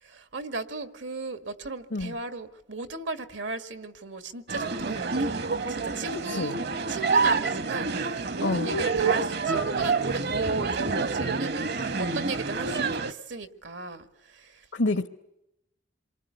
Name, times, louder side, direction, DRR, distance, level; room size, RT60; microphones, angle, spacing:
voice 1, 0.0-5.4 5.7-15.1, right 3 dB, 90° right, 9 dB, 1.9 m, -36 dB
sound 1, 4.5-13.1, right 4 dB, 60° right, 1.0 m, -27 dB
voice 2, 8.4-8.8 14.7-15.1, left 2 dB, 80° left, 9 dB, 1.0 m, -27 dB
28.0 x 24.0 x 8.3 m, 0.87 s
head